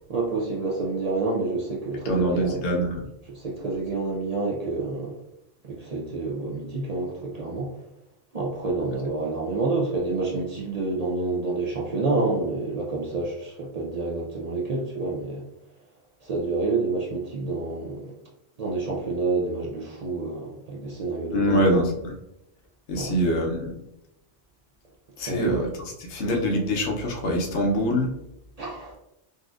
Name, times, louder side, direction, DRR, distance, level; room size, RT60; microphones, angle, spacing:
voice 1, 0.1-2.6 3.3-5.1 5.6-7.7 8.3-15.4 16.2-18.1 18.6-21.8 22.9-23.1 25.3-25.6 28.6-28.9, right 3 dB, 50° right, -3 dB, 0.5 m, -28 dB
voice 2, 2.0-3.1 21.3-22.2 22.9-23.7 25.2-25.7 26.0-28.1, equal, 90° left, 1 dB, 1.0 m, -24 dB
4.0 x 2.4 x 2.4 m, 0.87 s
omnidirectional pair, 1.1 m